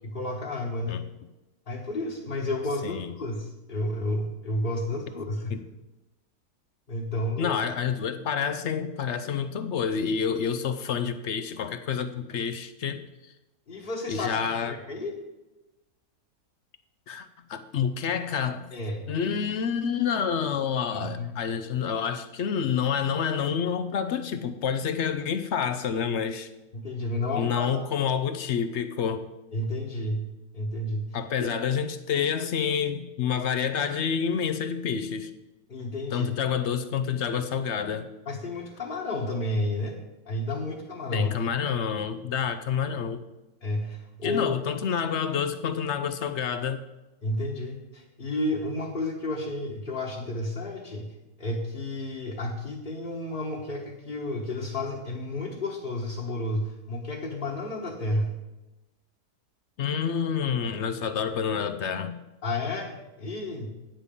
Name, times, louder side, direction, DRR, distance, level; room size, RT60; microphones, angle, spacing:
voice 1, 0.0-1.0 1.7-5.6 6.9-7.6 13.7-14.4 14.7-15.1 18.7-19.2 20.9-21.3 26.7-27.7 29.5-30.3 30.5-31.5 35.7-36.3 38.2-40.0 40.2-41.4 43.6-44.6 47.2-58.3 62.4-63.7, left 1 dB, 35° left, -5 dB, 1.3 m, -31 dB
voice 2, 7.4-13.0 14.1-14.7 17.1-18.7 19.1-26.5 27.3-29.3 31.1-35.3 36.1-38.1 41.1-43.2 44.2-46.8 59.8-62.2, left 7 dB, 65° left, 11 dB, 0.7 m, -28 dB
9.7 x 7.4 x 5.3 m, 1.0 s
omnidirectional pair, 1.7 m